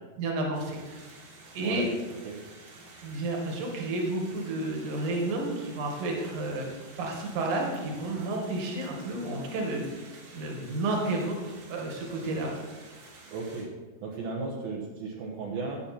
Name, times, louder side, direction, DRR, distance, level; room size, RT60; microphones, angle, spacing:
voice 1, 0.2-0.8 1.5-1.9 3.0-6.7 7.0-10.0 10.3-12.5, right 2 dB, 55° right, 0 dB, 3.2 m, -31 dB
sound 1, 0.5-13.6, right 2 dB, 90° right, 4.7 m, -51 dB
voice 2, 13.3-13.7 14.0-15.8, right 4 dB, 70° right, -3 dB, 3.0 m, -35 dB
14.5 x 8.9 x 4.4 m, 1.3 s
omnidirectional pair, 4.9 m